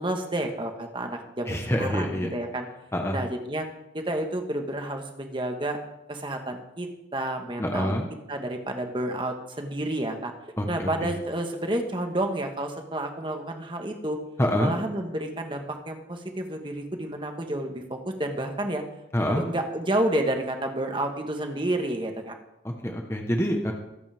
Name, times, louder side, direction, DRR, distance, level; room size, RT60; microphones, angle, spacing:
voice 1, 0.0-2.6 3.1-3.7 3.9-5.8 6.1-7.9 8.3-10.3 10.7-14.2 14.6-18.8 19.3-22.3, right 1 dB, 25° right, 4 dB, 1.5 m, -30 dB
voice 2, 1.5-2.3 2.9-3.2 7.6-8.1 10.6-11.1 14.4-14.7 19.1-19.4 22.6-23.7, equal, 15° left, 2 dB, 1.2 m, -26 dB
22.5 x 8.5 x 3.6 m, 0.89 s
head